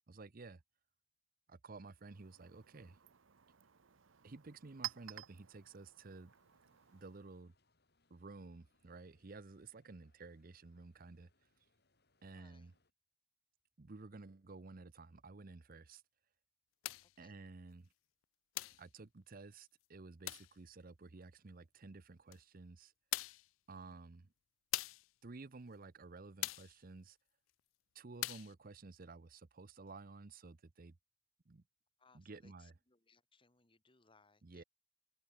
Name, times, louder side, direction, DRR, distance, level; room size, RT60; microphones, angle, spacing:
voice 1, 0.1-0.6 1.5-3.0 4.2-6.3 6.9-7.5 8.1-11.3 12.2-12.7 13.8-16.0 17.2-17.9 18.8-22.9 23.7-24.3 25.2-27.2 27.9-31.0 31.5-31.6 32.1-32.7 34.4-34.6, right 3 dB, 45° right, 0.7 m, -53 dB
Chink clink, 1.9-7.4, right 12 dB, 85° right, 0.9 m, -52 dB
sound 1, 6.3-12.9, left 2 dB, 55° left, 7.1 m, -80 dB
voice 2, 12.3-12.7 17.0-17.4 23.7-24.0 32.0-34.6, left 4 dB, 25° left, 2.1 m, -70 dB
sound 2, 16.8-17.1 18.6-18.9 20.3-20.5 22.3-22.4 23.1-23.5 24.7-25.1 26.4-26.8 28.2-28.5, left 18 dB, 90° left, 0.3 m, -41 dB
head